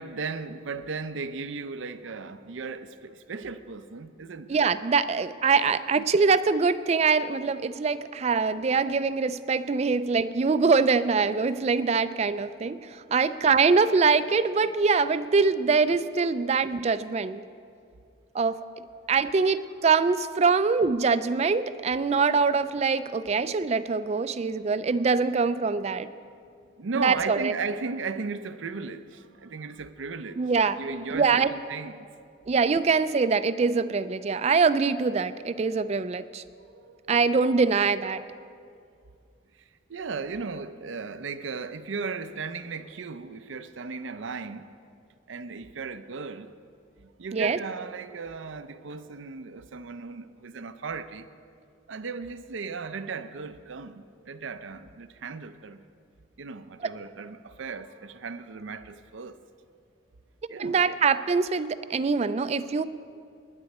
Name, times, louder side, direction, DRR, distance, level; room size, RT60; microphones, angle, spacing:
voice 1, 0.0-4.6 5.9-6.0 13.5-13.7 16.3-16.7 26.8-32.1 36.7-37.0 39.9-44.7 45.3-46.5 47.0-51.3 51.9-55.8 56.4-59.4 60.5-60.8, right 4 dB, 80° right, 0.6 m, -36 dB
voice 2, 4.5-17.4 18.3-18.6 19.1-26.1 27.0-27.5 30.4-30.8 31.1-31.5 32.5-36.4 37.1-38.2 47.3-47.6 60.6-62.8, right 4 dB, 35° right, 0.3 m, -24 dB
19.5 x 10.5 x 4.2 m
head